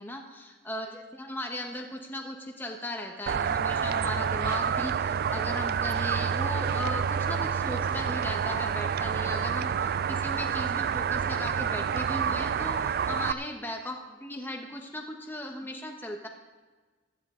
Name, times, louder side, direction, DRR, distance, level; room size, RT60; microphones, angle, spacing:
voice 1, 0.0-16.3, left 1 dB, 10° left, 2 dB, 1.1 m, -37 dB
sound 1, 3.3-13.3, right 7 dB, 50° right, 0.3 m, -28 dB
16.0 x 12.5 x 3.8 m, 1.3 s
head